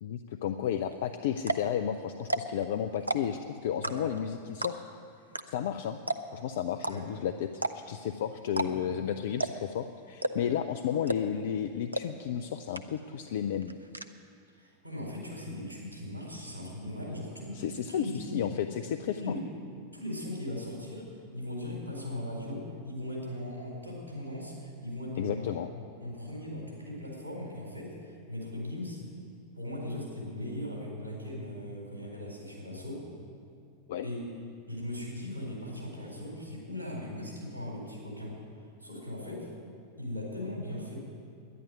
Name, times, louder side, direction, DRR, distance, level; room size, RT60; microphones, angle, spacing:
voice 1, 0.0-4.8 5.5-6.0 6.3-13.8 17.5-19.3 25.2-25.7 33.9-34.1, left 9 dB, 55° left, 8 dB, 0.4 m, -32 dB
sound 1, 0.9-1.0 1.4-1.7 2.2-2.6 3.0-3.4 3.8-4.2 4.6-5.0 5.3-5.4 5.7-5.8 6.1-6.4 6.8-6.9 7.5-8.0 8.5-9.0 9.4-9.7 10.2-10.6 11.1-11.4 11.9-12.0 12.4-12.5 12.7-13.2 13.4-14.1, right 2 dB, 85° right, 0.6 m, -31 dB
voice 2, 14.5-17.6 17.9-18.4 19.1-19.4 19.9-21.0 21.3-29.0 29.5-33.0 34.0-34.2 34.7-38.3 38.8-39.5 40.0-41.0, left 1 dB, 85° left, -2 dB, 4.2 m, -39 dB
11.0 x 10.5 x 9.2 m, 2.3 s
figure-of-eight pair, 90°, 0 cm